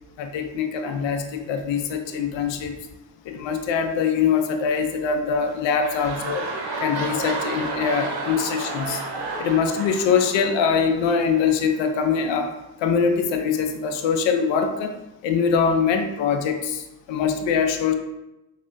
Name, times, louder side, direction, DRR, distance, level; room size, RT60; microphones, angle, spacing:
voice 1, 0.2-2.8 3.2-6.5 6.8-9.0 9.4-12.5 12.8-15.0 15.2-17.9, left 6 dB, 70° left, 6 dB, 0.5 m, -23 dB
sound 1, 5.4-11.7 12.4-12.5, right 3 dB, 55° right, 0.7 m, -31 dB
3.4 x 2.2 x 2.5 m, 0.95 s
hypercardioid pair, 45°, 47 cm